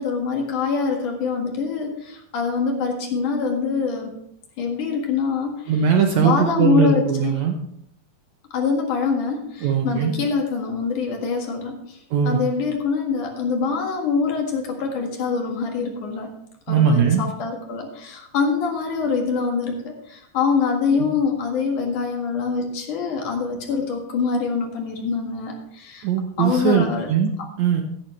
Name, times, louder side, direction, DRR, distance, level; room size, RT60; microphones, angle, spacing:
voice 1, 0.0-1.9 2.3-4.1 4.6-5.5 6.2-7.3 8.5-9.4 9.8-11.7 12.2-16.3 16.7-17.8 18.3-19.7 20.3-25.5 26.4-27.1, left 5 dB, 60° left, 1 dB, 3.0 m, -24 dB
voice 2, 5.7-7.6 9.6-10.1 12.1-12.5 16.7-17.2 20.9-21.1 26.0-27.3 27.6-27.8, right 7 dB, 90° right, 4 dB, 1.6 m, -20 dB
15.5 x 9.2 x 3.2 m, 0.72 s
omnidirectional pair, 4.4 m